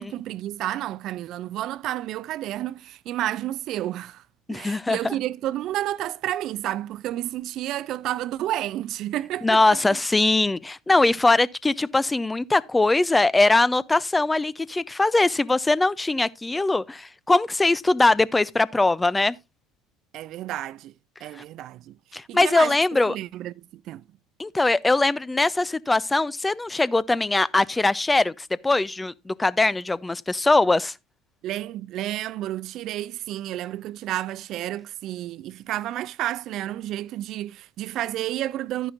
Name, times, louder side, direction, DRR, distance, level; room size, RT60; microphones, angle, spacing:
voice 1, 0.0-4.2 4.5-9.8 20.1-20.9 21.2-22.0 22.3-24.0 31.4-38.9, right 13 dB, 55° right, 0.4 m, -31 dB
voice 2, 4.5-5.1 9.4-19.4 22.1-23.2 24.4-30.9, left 2 dB, 15° left, 0.5 m, -21 dB
11.5 x 10.0 x 2.5 m
figure-of-eight pair, 65°, 0 cm